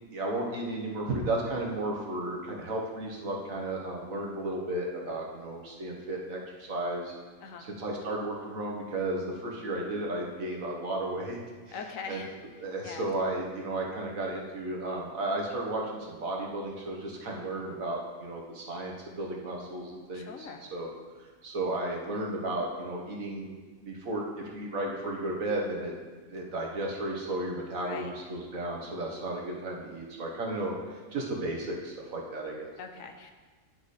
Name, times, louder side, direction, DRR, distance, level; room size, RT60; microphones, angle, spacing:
voice 1, 0.1-7.1 7.8-11.4 11.7-11.8 12.1-12.2 12.6-20.9 21.2-23.5 23.8-25.9 26.3-32.7, right 2 dB, 85° right, -1 dB, 1.7 m, -34 dB
voice 2, 11.7-12.4 12.8-13.1 20.1-20.6 27.8-28.1 32.8-33.3, left 5 dB, 80° left, 5 dB, 1.2 m, -41 dB
11.0 x 4.9 x 4.2 m, 1.4 s
omnidirectional pair, 1.4 m